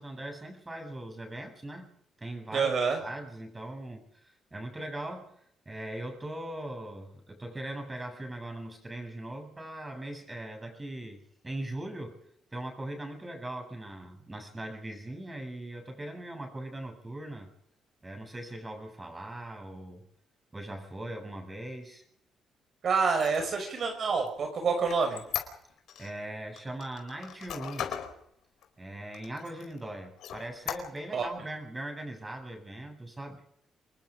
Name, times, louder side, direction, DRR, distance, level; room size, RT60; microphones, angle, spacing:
voice 1, 0.0-1.9 2.2-2.7 3.0-5.4 5.7-12.2 12.5-17.5 18.0-20.1 20.5-22.0 26.0-27.9 28.8-33.4, right 1 dB, 20° right, 5 dB, 7.8 m, -40 dB
voice 2, 2.5-3.0 22.8-25.2 31.1-31.3, right 5 dB, 55° right, 4 dB, 5.5 m, -27 dB
Squeak, 23.1-26.1 26.6-28.1 28.6-28.7 29.1-29.8 30.2-31.2, left 9 dB, 80° left, 4.5 m, -38 dB
27.5 x 20.5 x 5.1 m, 0.69 s
cardioid pair, 90°, 0 cm